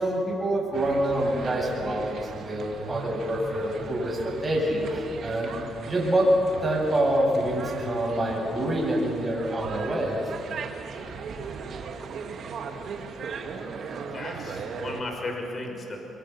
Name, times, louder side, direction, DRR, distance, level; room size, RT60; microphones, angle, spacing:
voice 1, 0.0-5.5 5.8-10.2, right 1 dB, 20° right, -2 dB, 7.8 m, -26 dB
sound 1, 0.7-15.0, right 5 dB, 65° right, 2.2 m, -38 dB
voice 2, 13.7-16.0, left 2 dB, 40° left, 2 dB, 5.6 m, -36 dB
24.5 x 23.5 x 7.0 m, 2.8 s
cardioid pair, 90°, 0 cm